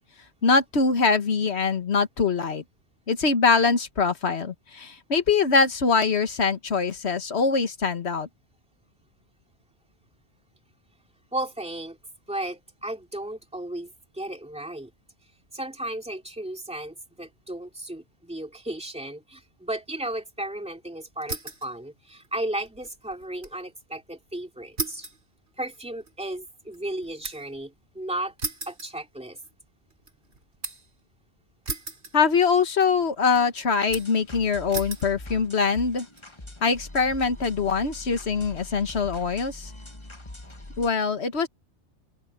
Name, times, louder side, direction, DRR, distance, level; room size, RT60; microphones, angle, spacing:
voice 1, 0.4-2.6 3.1-8.3 32.1-36.1 36.6-39.7 40.8-41.5, left 5 dB, 65° left, 1.7 m, -23 dB
voice 2, 11.3-12.0 12.3-14.9 15.5-25.1 25.6-28.3 28.7-29.4, right 1 dB, 5° right, 2.7 m, -34 dB
sound 1, 21.2-21.7 22.1-23.6 23.9-24.0 24.8-27.6 28.4-29.5 29.9-30.9 31.7-32.6 32.8-33.4 33.9-34.3 34.7-35.1 35.8-36.2, right 3 dB, 65° right, 4.0 m, -36 dB
sound 2, 33.9-40.9, left 1 dB, 25° left, 1.6 m, -42 dB
open air
omnidirectional pair, 1.2 m